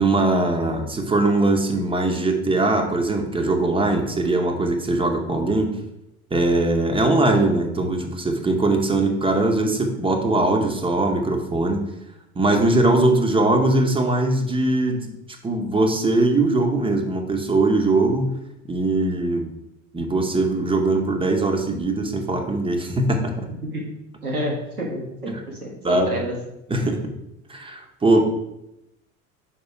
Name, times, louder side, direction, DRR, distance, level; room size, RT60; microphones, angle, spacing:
voice 1, 0.0-5.8 6.3-11.9 12.3-15.1 15.4-18.4 18.6-19.5 19.9-23.5 25.3-25.4 25.8-26.1 26.7-27.1 27.5-28.2, right 2 dB, 10° right, 4 dB, 0.9 m, -21 dB
voice 2, 24.2-26.4, equal, 85° right, -2 dB, 1.5 m, -29 dB
5.9 x 5.0 x 4.5 m, 0.86 s
figure-of-eight pair, 70°, 43 cm